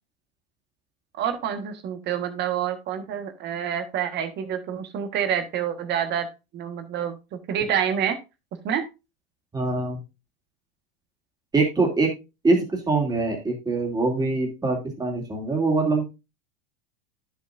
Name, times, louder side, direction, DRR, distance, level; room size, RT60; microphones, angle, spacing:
voice 1, 1.2-6.3 6.5-8.2 8.6-8.8, right 9 dB, 35° right, 9 dB, 1.5 m, -27 dB
voice 2, 9.5-10.0 11.5-12.1 12.4-16.1, right 3 dB, 15° right, 1 dB, 2.6 m, -23 dB
10.0 x 7.1 x 2.6 m, 0.27 s
supercardioid pair, 135°, 29 cm